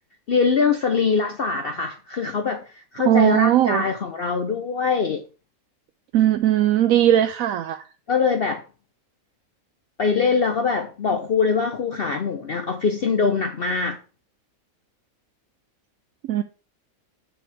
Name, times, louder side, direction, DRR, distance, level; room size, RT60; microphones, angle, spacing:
voice 1, 0.3-5.2 8.1-8.6 10.0-14.0, left 5 dB, 50° left, 0.8 m, -23 dB
voice 2, 3.0-3.8 6.1-7.9 16.2-16.4, right 11 dB, 75° right, 1.0 m, -19 dB
9.3 x 5.8 x 3.5 m
omnidirectional pair, 1.5 m